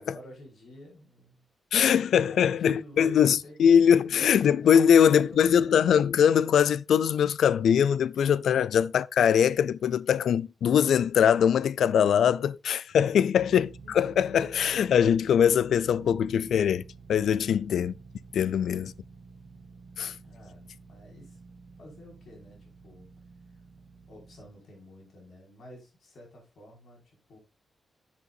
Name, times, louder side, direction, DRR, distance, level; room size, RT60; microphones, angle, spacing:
voice 1, 0.0-1.5 2.2-3.6 3.8-4.4 4.6-5.7 8.4-8.5 13.8-14.0 17.3-17.6 20.2-21.4 21.7-23.1 23.5-23.6 24.1-27.4, left 1 dB, 60° left, 5.4 m, -51 dB
voice 2, 1.7-16.8 17.1-17.9 18.3-18.9 20.0-20.1, left 8 dB, 85° left, 0.4 m, -22 dB
sound 1, 13.3-24.5, right 4 dB, 65° right, 1.8 m, -50 dB
10.5 x 7.3 x 2.6 m
wide cardioid pair, 165°, 0 cm